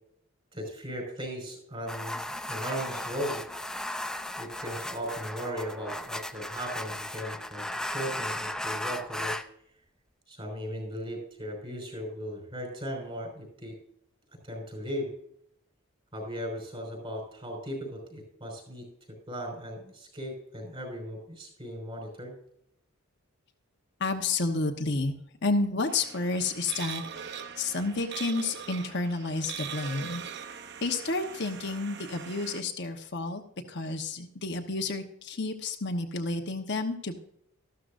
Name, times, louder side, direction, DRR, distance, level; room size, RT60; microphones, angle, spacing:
voice 1, 0.5-3.4 4.4-9.4 10.3-13.8 14.4-15.1 16.1-18.9 19.3-22.3, equal, 25° right, 2 dB, 5.3 m, -37 dB
sound 1, 1.9-9.5, left 1 dB, 5° left, 0.5 m, -36 dB
voice 2, 24.0-25.1 25.4-30.2 30.8-33.4 33.7-37.2, left 3 dB, 55° left, 4 dB, 1.1 m, -30 dB
sound 2, 25.9-32.6, right 7 dB, 55° right, 0.8 m, -41 dB
14.0 x 12.5 x 2.6 m, 0.70 s
head